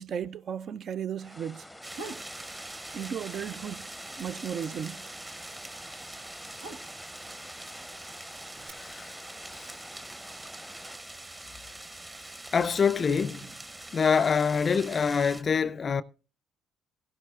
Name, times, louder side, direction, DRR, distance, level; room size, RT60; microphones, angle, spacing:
voice 1, 0.0-1.7 2.9-3.9 4.2-5.0, right 8 dB, 55° right, 0.4 m, -35 dB
sound 1, 1.2-11.0, equal, ahead, 0.7 m, -49 dB
sound 2, 1.8-15.4, right 1 dB, 25° right, 1.1 m, -44 dB
sound 3, 1.9-2.3 2.7-3.4 3.7-7.3 8.1-8.7, right 3 dB, 85° right, 1.1 m, -45 dB
voice 2, 8.6-9.1 9.5-9.7 12.5-13.5 13.9-16.0, left 6 dB, 45° left, 0.4 m, -26 dB
16.0 x 12.0 x 2.4 m
hypercardioid pair, 55°, 0 cm